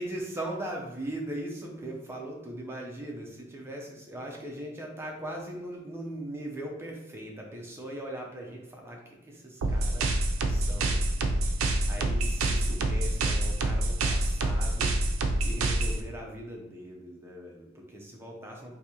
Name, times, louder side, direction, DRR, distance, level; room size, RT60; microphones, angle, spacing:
voice 1, 0.0-10.1 10.5-11.0 11.9-14.9 15.4-18.8, right 1 dB, 10° right, -1 dB, 0.6 m, -39 dB
sound 1, 9.6-16.0, right 2 dB, 75° right, 0.4 m, -27 dB
3.8 x 2.7 x 2.8 m, 0.87 s
head